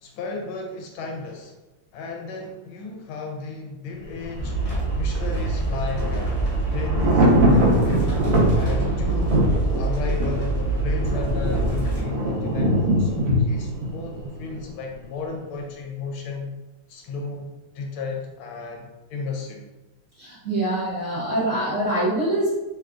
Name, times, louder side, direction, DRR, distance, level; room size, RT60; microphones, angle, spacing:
voice 1, 0.0-1.5 1.9-4.6 4.9-6.4 6.7-8.2 8.5-12.7 13.0-16.5 16.9-17.5 17.7-19.7, left 4 dB, 80° left, 1 dB, 1.4 m, -34 dB
Thunder, 4.1-15.0 15.3-15.4, equal, 85° right, 1.6 m, -23 dB
sound 1, 4.4-12.0, right 2 dB, 25° left, 0.7 m, -25 dB
voice 2, 20.2-22.5, right 1 dB, 45° right, -10 dB, 1.1 m, -24 dB
3.8 x 2.2 x 2.4 m, 1.0 s
omnidirectional pair, 2.3 m